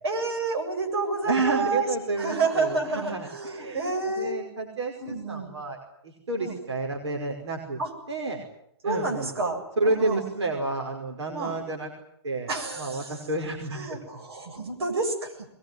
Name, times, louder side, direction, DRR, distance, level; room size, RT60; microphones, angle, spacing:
voice 1, 0.0-1.9 2.2-4.4 5.0-5.5 6.4-6.6 7.8-7.9 8.8-10.2 11.3-11.6 12.5-13.2 13.7-15.5, right 3 dB, 65° right, 3 dB, 8.0 m, -29 dB
voice 2, 1.2-5.8 6.0-7.8 8.1-8.4 8.8-9.3 9.8-11.9 12.2-12.5 12.8-14.0, right 3 dB, 85° right, 1 dB, 5.4 m, -30 dB
22.0 x 21.0 x 9.6 m, 0.74 s
hypercardioid pair, 160°, 14 cm